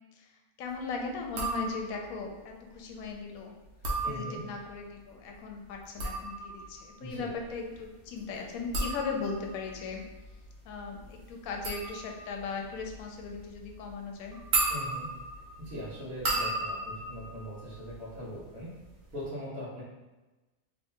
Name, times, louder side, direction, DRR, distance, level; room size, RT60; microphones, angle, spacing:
voice 1, 0.6-3.5 4.1-10.0 10.6-14.4, left 4 dB, 75° left, 1 dB, 1.0 m, -38 dB
sound 1, 1.3-2.1 3.6-4.7 5.7-18.4 18.7-19.2, right 2 dB, 90° right, 1.3 m, -36 dB
voice 2, 4.0-4.4 7.0-7.3 14.7-15.1 15.6-18.7 19.1-19.8, equal, 70° right, -11 dB, 1.5 m, -40 dB
3.6 x 3.2 x 2.6 m, 1.1 s
omnidirectional pair, 1.5 m